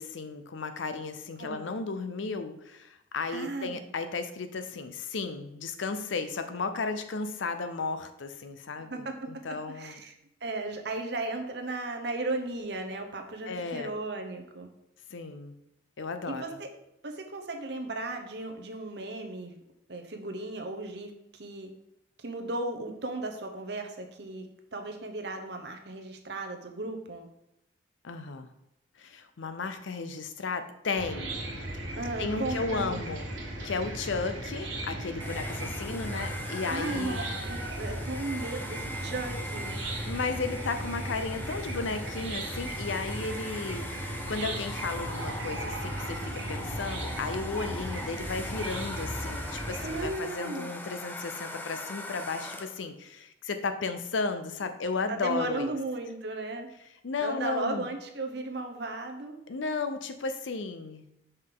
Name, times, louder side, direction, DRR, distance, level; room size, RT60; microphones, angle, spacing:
voice 1, 0.0-10.0 13.5-13.9 15.1-15.5 16.0-16.6 28.0-28.5 29.0-31.4 32.2-33.3 33.6-37.2 40.1-55.8 57.0-57.9 59.5-61.1, left 4 dB, 85° left, 9 dB, 0.6 m, -34 dB
voice 2, 1.4-1.9 3.3-3.8 8.9-9.1 9.7-10.1 10.4-14.7 16.3-16.7 17.0-19.6 19.9-21.7 22.2-24.5 24.7-27.3 31.9-33.0 36.7-39.8 49.8-50.7 55.1-56.7 57.2-59.4, right 2 dB, 60° right, 4 dB, 0.8 m, -35 dB
Chicken rooster / Cricket, 31.0-50.1, right 1 dB, 85° right, 1.7 m, -36 dB
Domestic sounds home sounds, 35.2-52.9, left 1 dB, 10° left, 0.4 m, -41 dB
5.9 x 5.3 x 3.7 m, 0.84 s
head